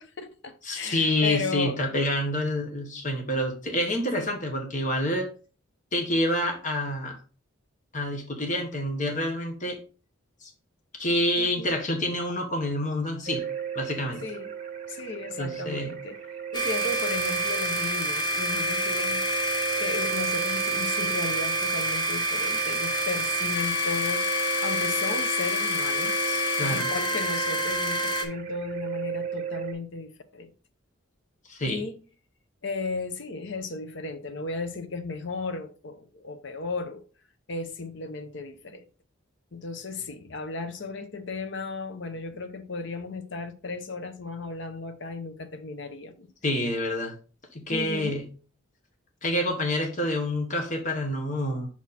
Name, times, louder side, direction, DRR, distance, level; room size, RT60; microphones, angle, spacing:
voice 1, 0.0-1.8 4.1-4.3 11.4-11.7 14.2-14.5 14.9-16.2 16.5-19.3 19.8-24.3 24.6-30.5 31.7-32.0 32.6-37.0 37.5-38.9 39.5-46.3 47.7-48.2, left 4 dB, 60° left, 0.7 m, -35 dB
voice 2, 0.6-5.3 5.9-7.1 7.9-9.8 10.4-10.5 11.0-13.4 13.7-14.2 15.4-15.9 26.6-26.8 31.5-31.8 46.4-47.1 47.5-48.2 49.2-51.7, left 1 dB, 35° left, 1.3 m, -27 dB
sound 1, 13.3-29.7, right 8 dB, 40° right, 1.0 m, -36 dB
sound 2, 16.5-28.2, equal, 20° left, 0.9 m, -27 dB
6.0 x 4.2 x 4.2 m
head